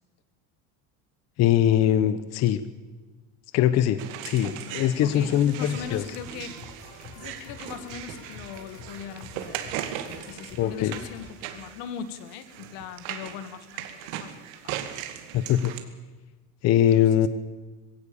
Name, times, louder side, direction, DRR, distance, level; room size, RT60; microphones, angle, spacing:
voice 1, 1.4-2.6 3.5-6.0 10.6-10.9 15.3-15.7 16.6-17.3, left 11 dB, 45° left, 12 dB, 0.9 m, -22 dB
sound 1, 4.0-15.8, right 11 dB, 85° right, 2.3 m, -38 dB
voice 2, 4.4-6.6 7.2-9.6 10.3-15.1 17.0-17.3, left 7 dB, 85° left, 12 dB, 2.0 m, -40 dB
sound 2, 5.6-11.3, left 3 dB, 65° left, 6.6 m, -47 dB
22.0 x 17.0 x 7.1 m, 1.3 s
cardioid pair, 160°, 36 cm